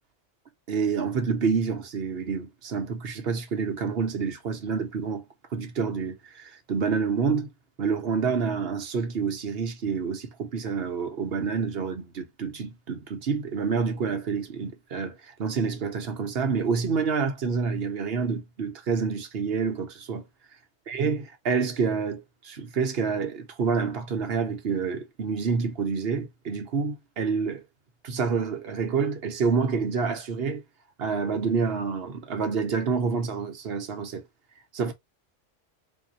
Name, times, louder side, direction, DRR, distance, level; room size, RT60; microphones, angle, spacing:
voice 1, 0.7-5.2 5.5-7.5 7.8-20.2 20.9-27.6 28.0-30.6 31.0-34.2 34.7-34.9, right 5 dB, 60° right, 1.0 m, -28 dB
4.1 x 2.7 x 2.7 m
omnidirectional pair, 1.2 m